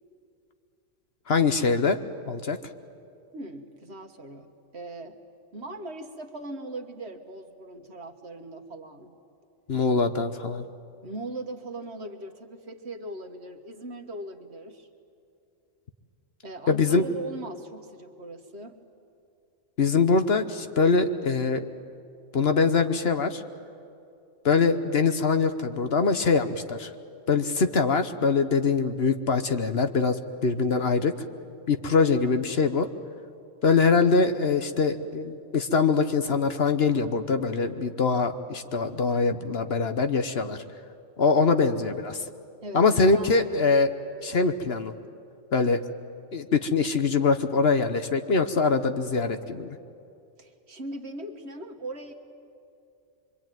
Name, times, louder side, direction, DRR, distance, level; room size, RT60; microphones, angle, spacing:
voice 1, 1.3-2.0 2.3-2.6 9.7-10.6 16.7-17.0 19.8-21.6 22.3-23.4 24.4-26.9 27.3-31.1 31.7-32.9 33.6-40.6 41.2-42.2 42.7-43.9 44.2-44.9 45.5-45.8 46.3-49.8, left 4 dB, 55° left, 8 dB, 1.2 m, -23 dB
voice 2, 3.3-5.2 5.5-9.1 11.0-14.9 16.4-18.8 42.6-43.3 50.4-52.1, right 2 dB, 55° right, 5 dB, 1.8 m, -39 dB
25.0 x 24.5 x 9.2 m, 2.6 s
omnidirectional pair, 1.3 m